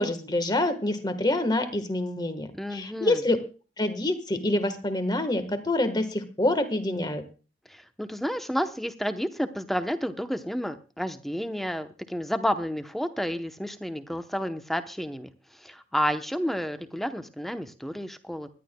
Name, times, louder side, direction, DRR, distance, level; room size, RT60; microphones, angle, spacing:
voice 1, 0.0-3.4 3.8-7.2, left 1 dB, 25° left, 9 dB, 1.4 m, -26 dB
voice 2, 2.5-3.2 7.7-15.3 15.6-18.5, equal, ahead, 8 dB, 0.8 m, -31 dB
24.5 x 11.0 x 2.2 m, 0.36 s
head